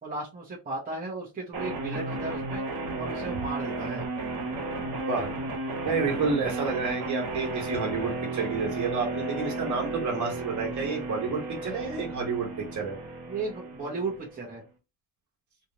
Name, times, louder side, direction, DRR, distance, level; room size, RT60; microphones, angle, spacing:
voice 1, 0.0-2.6 3.0-4.0 13.3-14.6, right 3 dB, 20° right, -6 dB, 0.9 m, -35 dB
sound 1, 1.5-14.5, right 3 dB, 65° right, 1.3 m, -34 dB
voice 2, 5.8-13.0, right 4 dB, 45° right, -1 dB, 1.5 m, -30 dB
3.3 x 2.8 x 2.8 m, 0.27 s
cardioid pair, 170°, 41 cm